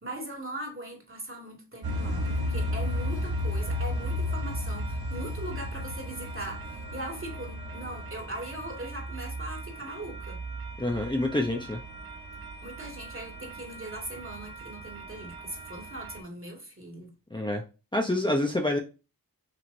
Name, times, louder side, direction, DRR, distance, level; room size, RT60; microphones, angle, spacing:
voice 1, 0.0-10.4 12.6-17.1, right 1 dB, 35° right, 2.1 m, -40 dB
sound 1, 1.8-16.2, left 1 dB, 80° right, 1.1 m, -35 dB
voice 2, 10.8-11.8 17.3-17.6 17.9-18.8, left 1 dB, 15° left, 0.8 m, -27 dB
6.0 x 2.9 x 2.6 m
cardioid pair, 50°, 36 cm